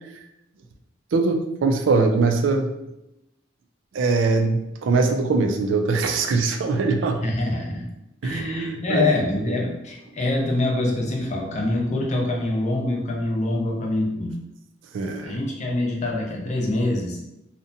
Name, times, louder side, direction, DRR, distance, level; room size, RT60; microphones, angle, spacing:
voice 1, 1.1-2.7 3.9-7.2 8.2-9.0 9.5-9.6 14.9-15.4, right 3 dB, 75° right, 5 dB, 0.4 m, -22 dB
voice 2, 7.2-7.9 8.2-14.3 15.2-17.2, left 2 dB, 40° left, 0 dB, 0.5 m, -25 dB
2.7 x 2.1 x 2.5 m, 0.89 s
head